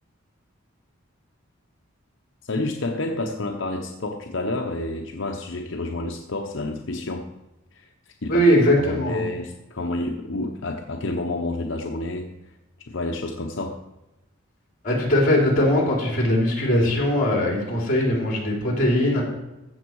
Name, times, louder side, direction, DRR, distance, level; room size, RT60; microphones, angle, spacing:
voice 1, 2.4-7.3 7.7-8.5 8.8-12.5 12.9-13.8, left 2 dB, 65° left, 3 dB, 0.9 m, -29 dB
voice 2, 8.3-9.2 14.8-19.2, equal, 40° left, -1 dB, 3.5 m, -20 dB
15.5 x 6.2 x 4.7 m, 1.0 s
head